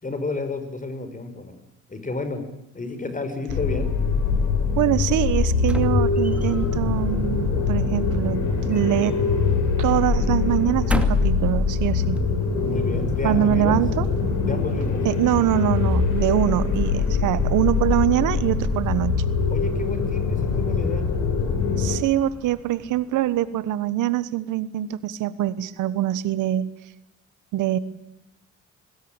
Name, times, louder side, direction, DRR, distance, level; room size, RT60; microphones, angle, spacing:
voice 1, 0.0-1.6 1.9-2.4 2.7-3.9 12.6-13.8 14.4-15.0 19.5-21.1, left 3 dB, 25° left, 9 dB, 5.6 m, -31 dB
sound 1, 3.5-22.0, left 5 dB, 85° left, 5.1 m, -23 dB
voice 2, 4.8-9.2 9.8-12.2 13.2-14.1 15.0-19.1 21.8-26.7 27.5-27.8, right 13 dB, 90° right, 16 dB, 1.3 m, -23 dB
sound 2, 5.6-6.8 8.3-9.5 9.8-10.0 10.5-11.5 12.2-12.3, right 1 dB, 5° right, 2.4 m, -32 dB
Thunder, 6.0-23.3, right 4 dB, 50° right, 7.3 m, -38 dB
24.0 x 20.0 x 8.9 m, 0.90 s
cardioid pair, 90°, 30 cm